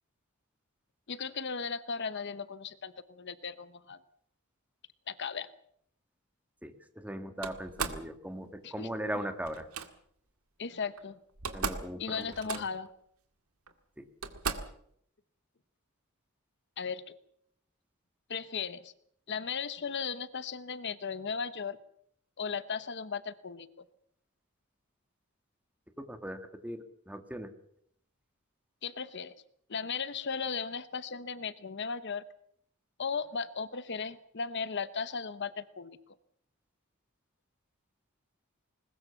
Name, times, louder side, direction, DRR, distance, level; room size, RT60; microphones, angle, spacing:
voice 1, 1.1-4.0 5.1-5.5 8.6-8.9 10.6-11.2 12.0-12.9 16.8-17.0 18.3-18.9 19.3-21.8 22.4-23.7 28.8-29.4 29.7-32.2 33.0-36.0, left 5 dB, 55° left, 15 dB, 0.9 m, -36 dB
voice 2, 6.6-9.7 11.5-12.6 14.0-14.1 26.0-27.5, equal, 5° right, 8 dB, 1.7 m, -39 dB
Slam, 7.4-8.1 9.5-9.9 11.0-11.1 11.3-11.9 12.2-12.9 13.7-13.8 14.2-14.8, right 5 dB, 80° right, 1.9 m, -36 dB
21.0 x 20.0 x 7.0 m, 0.68 s
head